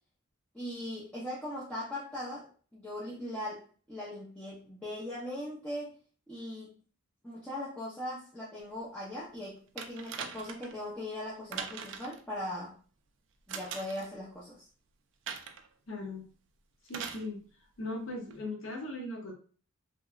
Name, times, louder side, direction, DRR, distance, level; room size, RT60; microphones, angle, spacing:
voice 1, 0.5-5.9 6.3-6.7 7.2-12.8 13.5-14.7, left 1 dB, 5° left, -9 dB, 0.5 m, -39 dB
sound 1, 9.8-10.8 11.5-12.2 13.5-14.1 15.3-15.7 16.9-17.3 18.3-18.4, right 6 dB, 55° right, 0.3 m, -41 dB
voice 2, 15.9-16.3 16.9-17.4 17.8-19.3, left 2 dB, 60° left, 1 dB, 0.7 m, -38 dB
2.8 x 2.2 x 2.3 m, 0.40 s
head